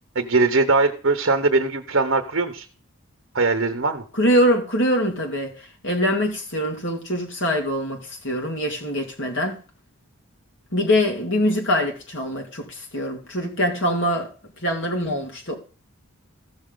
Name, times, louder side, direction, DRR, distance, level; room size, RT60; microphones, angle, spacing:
voice 1, 0.1-2.7 3.3-4.0, right 3 dB, 55° right, 0.9 m, -21 dB
voice 2, 4.2-9.6 10.7-14.3 14.6-15.6, equal, 55° left, 2.5 m, -23 dB
15.0 x 6.3 x 3.8 m
head